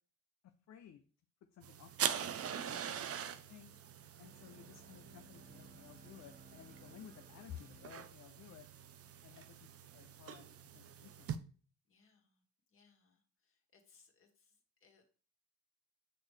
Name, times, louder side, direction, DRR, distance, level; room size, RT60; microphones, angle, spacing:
voice 1, 0.7-1.1 1.5-3.7 4.2-8.7 9.2-11.4, left 10 dB, 60° left, 7 dB, 0.7 m, -56 dB
sound 1, 1.6-11.4, right 9 dB, 50° right, 0.7 m, -44 dB
Bowed string instrument, 4.2-9.2, right 1 dB, 30° right, 1.0 m, -62 dB
voice 2, 9.2-9.6 11.9-12.4 12.7-15.1, left 5 dB, 45° left, 1 dB, 2.2 m, -70 dB
6.3 x 6.0 x 3.3 m, 0.39 s
cardioid pair, 90°, 30 cm